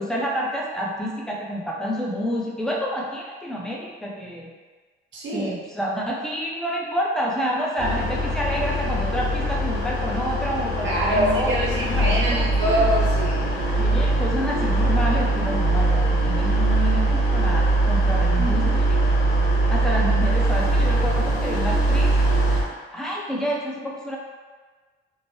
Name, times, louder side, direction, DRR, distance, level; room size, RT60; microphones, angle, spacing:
voice 1, 0.0-4.5 5.3-12.5 13.8-19.0 19.7-22.1 22.9-24.2, equal, 5° left, -4 dB, 0.6 m, -28 dB
voice 2, 5.1-5.5 10.8-13.5 18.4-18.7, right 1 dB, 65° right, -6 dB, 1.1 m, -25 dB
sound 1, 7.8-22.6, right 2 dB, 80° left, 0.7 m, -21 dB
3.1 x 2.1 x 2.9 m, 1.4 s
cardioid pair, 90°, 20 cm